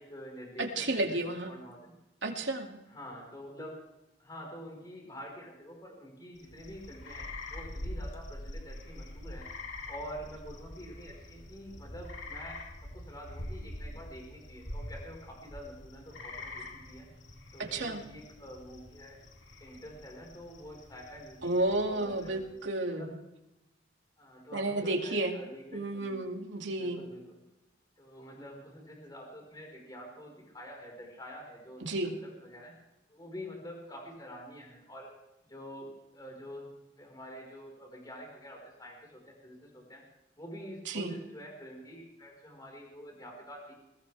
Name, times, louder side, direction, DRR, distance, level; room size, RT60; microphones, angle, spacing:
voice 1, 0.0-1.2 1.5-1.9 2.9-3.8 4.2-9.5 9.9-12.6 12.9-17.1 17.5-19.2 19.6-22.4 22.9-23.2 24.2-26.2 26.8-27.4 28.0-32.7 33.1-35.1 35.5-36.7 37.0-40.0 40.4-43.7, equal, 20° left, 0 dB, 4.8 m, -47 dB
voice 2, 0.6-1.5 2.2-2.7 17.7-18.0 21.4-23.2 24.5-25.4 25.7-27.1 31.8-32.1 40.9-41.1, right 2 dB, 75° right, 2 dB, 2.5 m, -32 dB
sound 1, 6.4-22.6, left 1 dB, 85° left, 2.6 m, -45 dB
22.0 x 18.0 x 3.5 m, 0.93 s
head